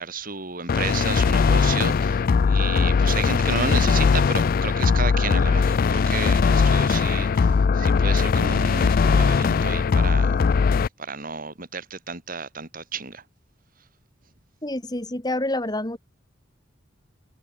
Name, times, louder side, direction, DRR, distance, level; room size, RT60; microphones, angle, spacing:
voice 1, 0.0-10.4 11.0-13.2, right 5 dB, 45° right, 3.5 m, -32 dB
sound 1, 0.7-10.9, left 5 dB, 50° left, 0.3 m, -20 dB
voice 2, 14.6-16.0, left 1 dB, 20° left, 2.7 m, -27 dB
head